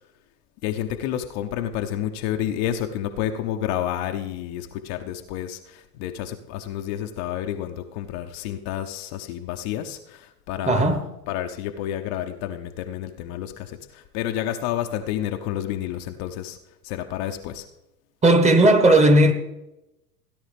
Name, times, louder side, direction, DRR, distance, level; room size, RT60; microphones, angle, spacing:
voice 1, 0.6-16.6 16.8-17.7, left 11 dB, 40° left, 0.8 m, -30 dB
voice 2, 10.7-11.0 18.2-19.3, right 1 dB, 15° right, 1.3 m, -15 dB
16.5 x 10.5 x 3.4 m
figure-of-eight pair, 90°, 47 cm